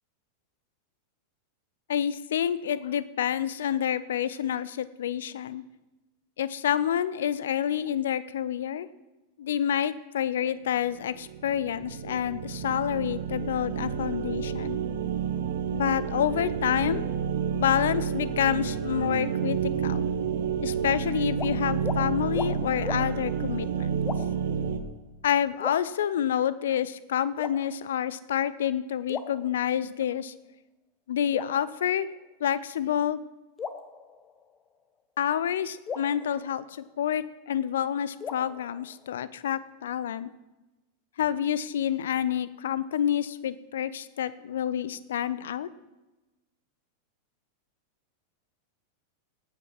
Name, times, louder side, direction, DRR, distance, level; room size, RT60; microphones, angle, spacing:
voice 1, 1.9-5.6 6.4-8.9 9.4-14.8 15.7-17.1 17.5-20.0 20.6-24.0 25.2-30.3 31.1-32.1 32.4-33.2 35.2-40.3 41.2-45.7, left 9 dB, 60° left, 17 dB, 0.6 m, -28 dB
sound 1, 11.0-24.8, right 7 dB, 55° right, 1.2 m, -30 dB
sound 2, 21.3-21.5 21.8-22.0 22.3-22.5 22.8-23.0 24.0-24.5 25.6-26.5 27.4-28.1 29.1-30.1 31.3-32.5 33.6-34.8 35.9-37.3 38.2-39.4, left 6 dB, 25° left, 1.0 m, -39 dB
17.5 x 9.2 x 4.5 m, 1.0 s
figure-of-eight pair, 90°, 0 cm